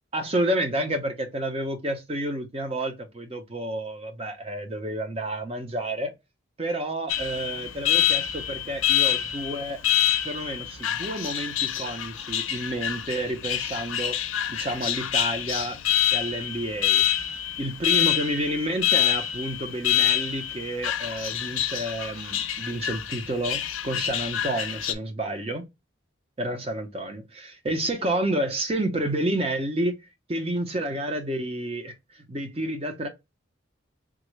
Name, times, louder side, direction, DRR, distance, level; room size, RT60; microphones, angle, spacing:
voice 1, 0.1-6.1 6.6-9.8 10.2-14.2 14.5-15.8 16.1-17.0 17.6-25.6 26.4-30.0 30.3-33.1, right 1 dB, 30° right, 0.6 m, -30 dB
Alarm, 7.1-24.9, left 11 dB, 90° left, 0.5 m, -27 dB
3.6 x 2.1 x 3.0 m
head